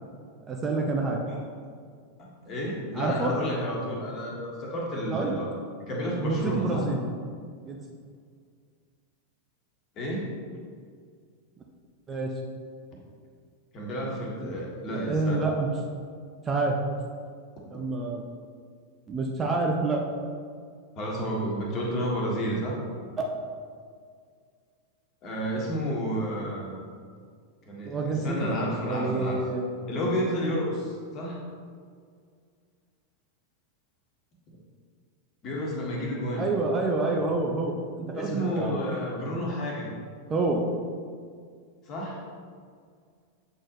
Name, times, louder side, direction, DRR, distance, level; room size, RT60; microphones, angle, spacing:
voice 1, 0.5-1.2 2.9-3.3 5.1-5.4 6.2-7.1 7.7-7.8 12.1-12.4 14.4-15.7 16.4-16.8 17.7-18.2 19.1-20.0 23.2-23.3 27.8-28.6 28.8-29.6 36.4-38.8 40.3-40.6, right 3 dB, 20° right, 1 dB, 0.6 m, -28 dB
voice 2, 2.2-5.5 5.9-6.9 9.9-10.3 13.7-15.5 21.0-22.8 25.2-26.8 27.6-29.4 29.9-31.4 35.4-36.5 38.1-39.9 41.8-42.2, equal, 35° left, -3 dB, 1.5 m, -31 dB
7.5 x 4.4 x 3.0 m, 2.1 s
figure-of-eight pair, 90°, 0 cm